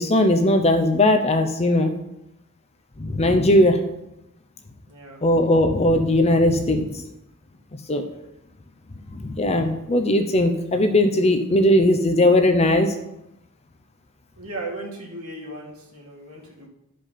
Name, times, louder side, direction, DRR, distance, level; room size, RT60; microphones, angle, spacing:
voice 1, 0.0-1.9 3.0-3.8 5.2-7.0 7.9-8.0 9.1-12.9, left 1 dB, 30° left, 6 dB, 0.7 m, -19 dB
voice 2, 4.9-5.2 14.4-16.7, right 2 dB, 75° right, -1 dB, 2.4 m, -36 dB
11.5 x 5.2 x 5.7 m, 0.86 s
head